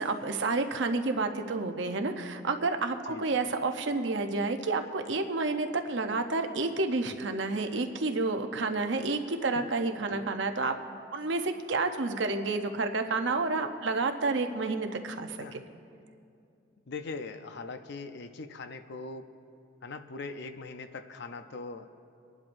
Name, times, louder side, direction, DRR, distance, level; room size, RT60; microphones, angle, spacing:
voice 1, 0.0-10.7 11.1-15.6, right 3 dB, 65° right, 6 dB, 0.7 m, -30 dB
voice 2, 16.9-19.3 19.8-21.9, left 3 dB, 60° left, 8 dB, 0.6 m, -41 dB
25.5 x 11.0 x 2.6 m, 2.5 s
head